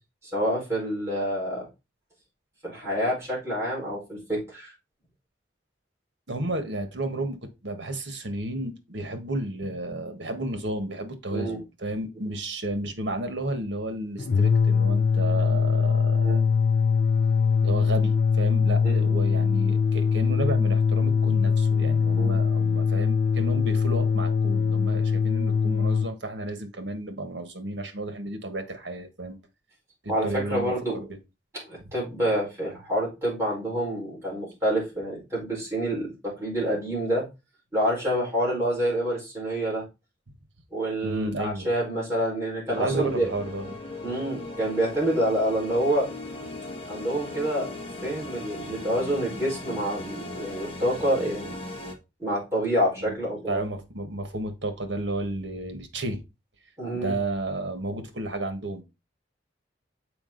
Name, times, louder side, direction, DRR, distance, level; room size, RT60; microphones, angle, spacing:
voice 1, 0.2-1.7 2.6-4.7 11.3-11.6 16.1-16.5 18.8-19.1 22.1-22.4 30.1-31.1 31.5-37.3 37.7-39.8 40.7-43.3 44.0-46.1 46.9-47.7 48.0-51.6 52.2-53.6 56.8-57.2, right 1 dB, 15° right, 4.8 m, -27 dB
voice 2, 6.3-16.4 17.6-29.4 30.0-31.0 41.0-41.7 42.8-43.8 53.0-53.2 53.5-56.2 56.9-58.8, right 1 dB, 70° right, 1.5 m, -32 dB
sound 1, 14.2-26.1, left 5 dB, 65° left, 0.5 m, -22 dB
sound 2, 42.7-51.9, left 2 dB, 30° left, 1.5 m, -38 dB
7.0 x 5.0 x 3.9 m
head